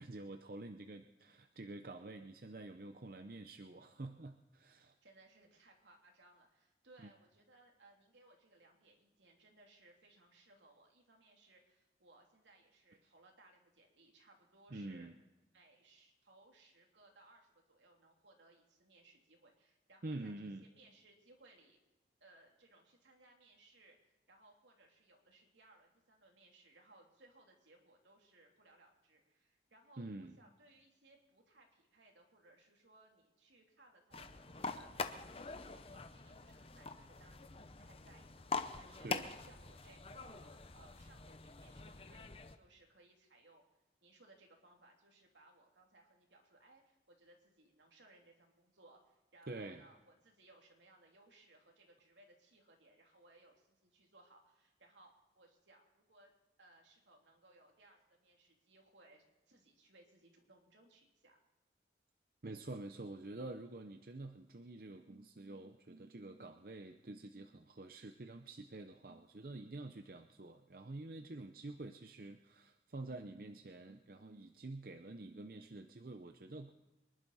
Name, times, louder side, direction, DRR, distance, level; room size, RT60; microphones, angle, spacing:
voice 1, 0.0-4.9 7.0-7.1 14.7-15.1 20.0-20.6 30.0-30.4 39.0-39.3 49.5-49.9 62.4-76.7, right 2 dB, 50° right, 7 dB, 0.7 m, -48 dB
voice 2, 5.0-15.1 15.5-21.8 22.2-43.6 44.0-55.1 55.3-56.3 56.6-61.4, right 2 dB, 85° right, 0 dB, 3.2 m, -65 dB
sound 1, 34.1-42.6, left 4 dB, 30° left, 0.7 m, -45 dB
25.0 x 11.5 x 4.2 m, 1.0 s
head